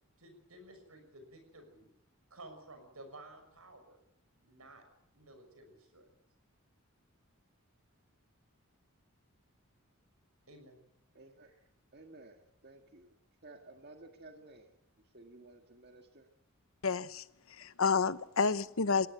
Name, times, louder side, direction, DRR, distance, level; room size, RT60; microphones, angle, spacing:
voice 1, 0.2-1.9 2.3-4.0 4.4-4.8 5.1-6.0 10.5-10.8, right 1 dB, 85° right, 6 dB, 6.2 m, -54 dB
voice 2, 11.1-11.5 11.9-13.1 13.4-14.8 15.1-16.3 17.6-17.7, right 2 dB, 45° right, 5 dB, 1.9 m, -55 dB
voice 3, 16.8-17.2 17.6-19.1, left 5 dB, 70° left, 15 dB, 0.9 m, -29 dB
21.0 x 17.0 x 9.2 m, 0.79 s
head